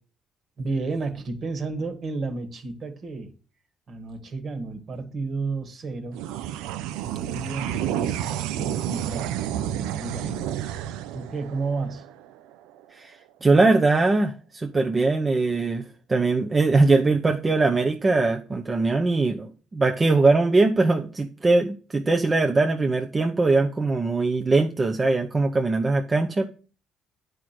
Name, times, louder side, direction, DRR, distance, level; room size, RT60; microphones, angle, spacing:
voice 1, 0.6-3.3 3.9-6.2 7.0-10.5 11.1-12.1, right 3 dB, 55° right, 2.1 m, -32 dB
sound 1, 6.1-12.8, right 11 dB, 90° right, 0.5 m, -30 dB
voice 2, 12.9-15.8 16.1-26.5, right 3 dB, 30° right, 0.9 m, -21 dB
9.4 x 5.1 x 6.1 m
supercardioid pair, 70°, 0 cm